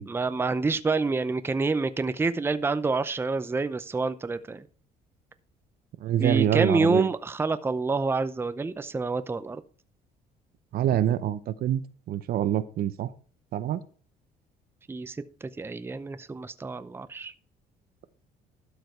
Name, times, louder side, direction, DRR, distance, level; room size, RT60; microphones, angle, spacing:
voice 1, 0.1-4.7 6.2-9.6 14.9-17.3, right 3 dB, 15° right, 0.6 m, -27 dB
voice 2, 6.0-7.1 10.7-11.8 12.1-13.1 13.5-13.8, right 11 dB, 65° right, 0.7 m, -25 dB
12.0 x 5.1 x 4.5 m
cardioid pair, 110°, 17 cm